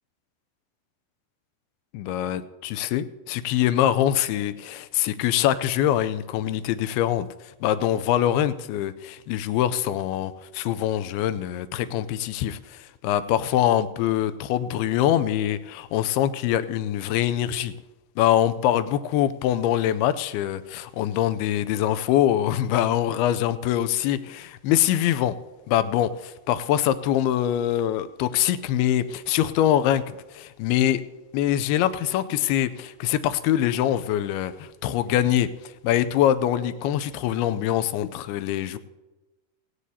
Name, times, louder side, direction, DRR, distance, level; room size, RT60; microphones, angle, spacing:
voice 1, 1.9-17.7 18.2-25.4 25.7-31.0 31.3-38.8, left 11 dB, 80° left, 13 dB, 2.3 m, -24 dB
18.0 x 16.5 x 2.8 m, 1.1 s
omnidirectional pair, 4.9 m